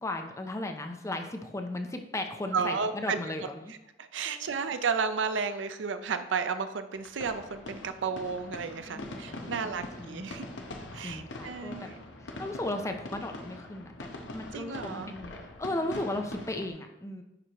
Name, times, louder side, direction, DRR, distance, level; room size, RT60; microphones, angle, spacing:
voice 1, 0.0-3.7 4.3-4.6 8.9-10.3 11.0-11.9 12.2-17.2, left 1 dB, 15° left, 5 dB, 0.6 m, -36 dB
voice 2, 2.5-3.2 4.0-10.4 10.9-11.9 14.5-15.1, right 5 dB, 85° right, 9 dB, 0.5 m, -32 dB
sound 1, 6.9-16.7, left 1 dB, 80° left, 0.8 m, -43 dB
9.9 x 4.6 x 3.0 m, 0.92 s
head